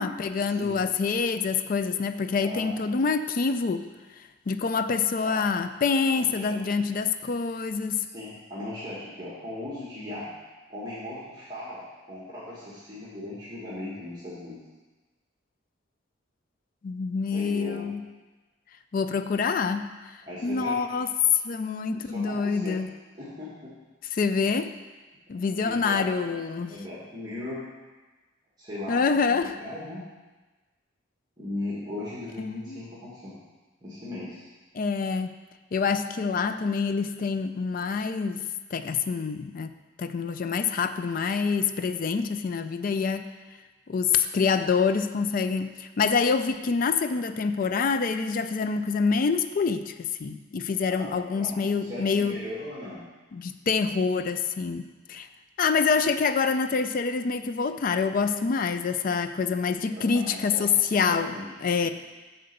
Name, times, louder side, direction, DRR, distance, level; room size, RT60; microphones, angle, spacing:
voice 1, 0.0-3.8 4.5-8.0 16.8-18.0 18.9-19.9 20.4-21.1 21.4-22.9 24.1-24.7 25.3-26.7 28.9-29.6 32.4-32.8 34.7-35.3 35.7-38.4 38.7-39.7 40.0-43.3 43.9-52.4 53.3-55.3 55.6-61.3 61.6-61.9, left 5 dB, 45° left, 10 dB, 0.4 m, -26 dB
voice 2, 2.4-2.7 5.2-5.4 6.1-6.8 8.0-10.3 10.7-14.6 17.3-17.8 20.2-20.8 21.9-22.8 23.1-23.7 25.5-27.7 28.6-30.0 31.4-33.3 33.8-34.5 51.0-53.0 59.9-60.7 61.1-61.4 61.8-61.9, left 1 dB, 20° right, -9 dB, 1.6 m, -38 dB
7.7 x 3.9 x 6.7 m, 1.2 s
head